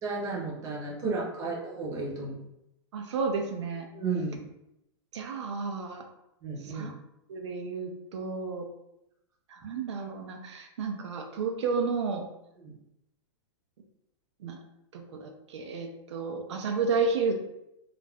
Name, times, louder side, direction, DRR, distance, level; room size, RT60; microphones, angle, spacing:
voice 1, 0.0-2.4 3.9-4.4 6.4-6.9 12.6-12.7, right 3 dB, 20° right, -3 dB, 0.7 m, -33 dB
voice 2, 2.9-3.9 5.1-6.1 6.6-6.9 7.3-8.7 9.5-12.2 14.4-14.6 14.9-17.3, right 4 dB, 85° right, 3 dB, 0.5 m, -32 dB
2.4 x 2.0 x 3.3 m, 0.84 s
hypercardioid pair, 155°, 15 cm